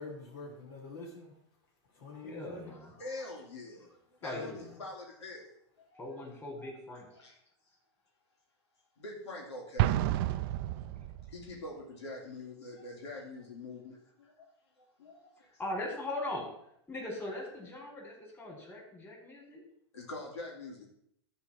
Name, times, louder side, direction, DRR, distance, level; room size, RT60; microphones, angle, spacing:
voice 1, 0.0-1.3 1.9-3.1 4.3-4.8, left 3 dB, 55° left, -1 dB, 3.3 m, -46 dB
voice 2, 2.2-3.0 4.2-4.6 6.0-7.1 10.0-10.1 15.4-16.5 16.9-19.6, left 1 dB, 15° left, -1 dB, 4.3 m, -40 dB
voice 3, 3.0-3.9 4.2-4.5 4.8-5.5 5.9-6.1 6.6-6.7 7.1-7.3 9.0-9.9 11.3-14.5 14.8-15.5 19.9-20.8, left 2 dB, 75° left, -2 dB, 3.3 m, -44 dB
Explosion, 9.8-11.5, right 14 dB, 55° right, 0.6 m, -30 dB
13.0 x 4.6 x 7.3 m, 0.73 s
hypercardioid pair, 105°, 14 cm